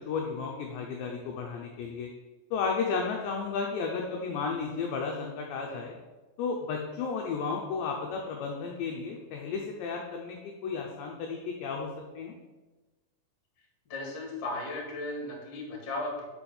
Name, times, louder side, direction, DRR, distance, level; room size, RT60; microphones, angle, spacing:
voice 1, 0.0-2.1 2.5-6.0 6.4-11.9 12.1-12.4, left 5 dB, 80° left, 1 dB, 2.6 m, -33 dB
voice 2, 13.9-16.2, left 2 dB, 45° left, -1 dB, 2.1 m, -36 dB
6.7 x 5.9 x 7.1 m, 1.2 s
omnidirectional pair, 5.9 m